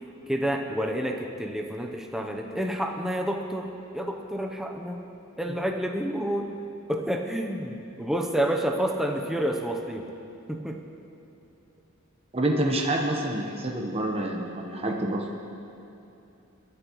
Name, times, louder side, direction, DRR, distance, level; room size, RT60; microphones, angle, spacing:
voice 1, 0.3-3.7 3.9-5.1 5.4-6.6 6.9-10.1 10.5-10.8, equal, ahead, 2 dB, 0.7 m, -29 dB
voice 2, 12.3-15.4, right 1 dB, 25° right, 0 dB, 1.0 m, -27 dB
21.5 x 11.5 x 3.1 m, 2.8 s
head